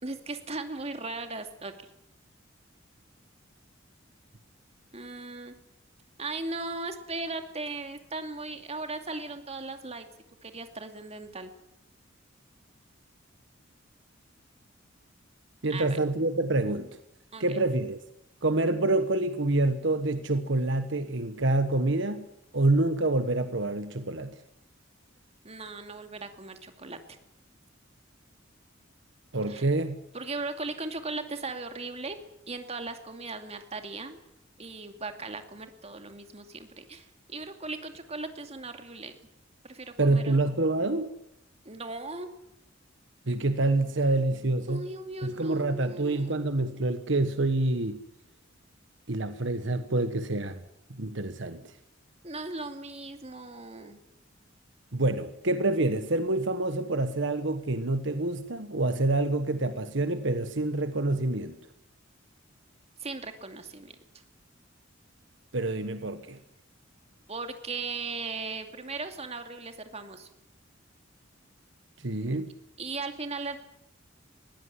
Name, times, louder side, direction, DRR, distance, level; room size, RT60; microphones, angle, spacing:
voice 1, 0.0-1.7 4.9-5.5 6.2-10.1 10.4-11.5 15.7-16.0 17.3-17.6 25.4-27.2 29.5-29.7 30.1-32.2 32.5-34.2 34.6-39.2 39.6-40.4 41.6-42.3 44.7-46.4 52.2-54.0 63.0-63.9 67.3-70.3 72.8-73.6, right 3 dB, 35° right, 7 dB, 2.5 m, -38 dB
voice 2, 15.6-16.9 17.4-18.0 18.4-22.3 22.5-24.3 29.3-30.0 40.0-41.1 43.3-44.8 45.2-48.0 49.1-50.6 50.9-51.6 54.9-61.6 65.5-66.4 72.0-72.5, right 2 dB, 65° right, 10 dB, 1.3 m, -27 dB
21.0 x 17.0 x 9.9 m, 0.81 s
head